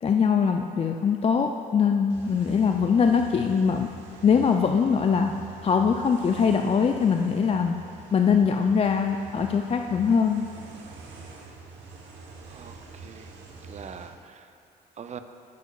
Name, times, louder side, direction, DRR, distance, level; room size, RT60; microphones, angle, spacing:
voice 1, 0.0-3.9 4.2-5.3 5.6-7.7 8.1-10.5, left 6 dB, 30° left, 4 dB, 0.4 m, -22 dB
sound 1, 2.1-14.1, right 4 dB, 70° right, 1.0 m, -45 dB
voice 2, 12.5-13.3 13.7-14.5 15.0-15.2, right 7 dB, 35° right, 9 dB, 0.5 m, -43 dB
11.5 x 6.2 x 2.3 m, 2.5 s
hypercardioid pair, 55°, 20 cm